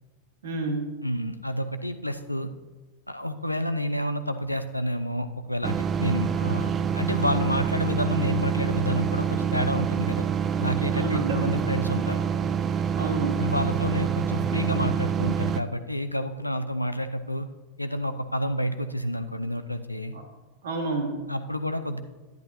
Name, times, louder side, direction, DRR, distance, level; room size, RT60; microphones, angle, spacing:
voice 1, 0.4-0.9 10.9-11.6 13.0-13.4 20.1-20.2 20.6-21.2, right 3 dB, 60° right, 2 dB, 1.8 m, -29 dB
voice 2, 1.0-2.5 3.1-10.3 10.6-12.2 13.4-17.5 17.8-20.1 21.3-22.0, equal, 90° left, 9 dB, 0.5 m, -29 dB
sound 1, 5.6-15.6, right 7 dB, 25° right, 0.4 m, -26 dB
10.5 x 10.5 x 2.7 m, 1.2 s
figure-of-eight pair, 90°, 0 cm